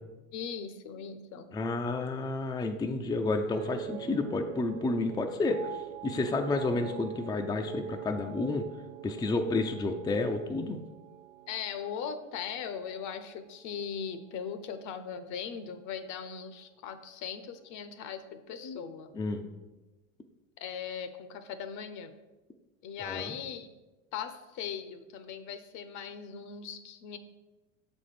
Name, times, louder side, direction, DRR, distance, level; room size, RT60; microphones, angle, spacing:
voice 1, 0.3-1.5 11.5-19.1 20.6-22.1 22.8-23.7 24.1-27.2, left 7 dB, 50° left, 11 dB, 0.8 m, -39 dB
voice 2, 1.5-8.7 9.0-10.8 19.1-19.4 23.0-23.3, left 3 dB, 10° left, 4 dB, 0.4 m, -30 dB
sound 1, 3.5-13.9 14.2-14.7, right 12 dB, 80° right, 0.5 m, -45 dB
7.0 x 4.3 x 5.0 m, 1.1 s
hypercardioid pair, 90°, 39 cm